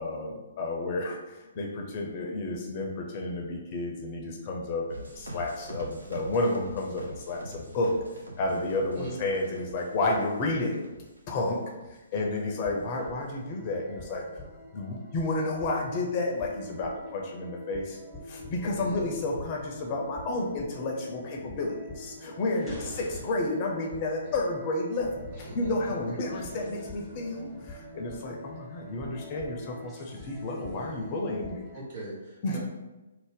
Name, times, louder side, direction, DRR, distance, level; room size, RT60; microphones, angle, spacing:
voice 1, 0.0-8.0 8.4-10.8 11.3-11.6 12.1-14.4 14.7-18.0 18.3-31.6 32.4-32.6, left 2 dB, 35° left, 0 dB, 0.4 m, -31 dB
sound 1, 4.9-11.8 12.1-12.7 13.0-13.5, right 1 dB, 80° right, 0.6 m, -44 dB
voice 2, 12.1-12.6 18.7-19.0 22.6-23.1 24.3-24.4 25.4-26.4 30.7-31.2 31.7-32.6, right 2 dB, 45° right, -6 dB, 1.2 m, -43 dB
sound 2, 12.6-31.8, left 1 dB, ahead, 0.7 m, -45 dB
2.5 x 2.0 x 3.5 m, 1.1 s
figure-of-eight pair, 130°, 0 cm